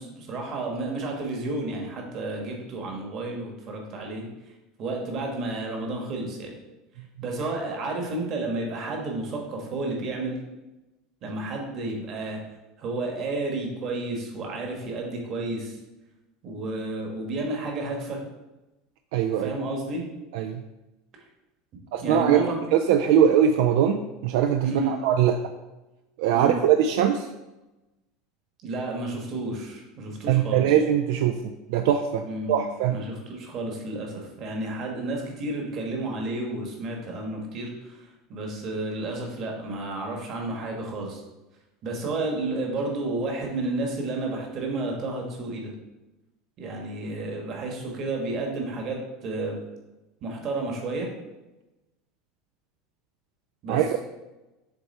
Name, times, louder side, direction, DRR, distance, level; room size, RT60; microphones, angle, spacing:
voice 1, 0.0-4.2 4.8-6.6 7.2-10.4 11.2-12.4 12.8-15.8 16.4-18.2 19.4-20.0 22.0-22.6 24.6-24.9 26.3-26.6 28.6-30.7 32.2-38.0 38.3-41.2 41.8-45.7 46.6-49.6 50.2-51.1 53.6-53.8, right 2 dB, 35° right, 1 dB, 1.3 m, -31 dB
voice 2, 19.1-19.5 20.3-20.6 21.9-25.4 26.2-27.3 30.3-33.0 53.7-54.0, right 9 dB, 65° right, 6 dB, 0.4 m, -22 dB
6.9 x 3.3 x 4.2 m, 1.0 s
supercardioid pair, 165°, 0 cm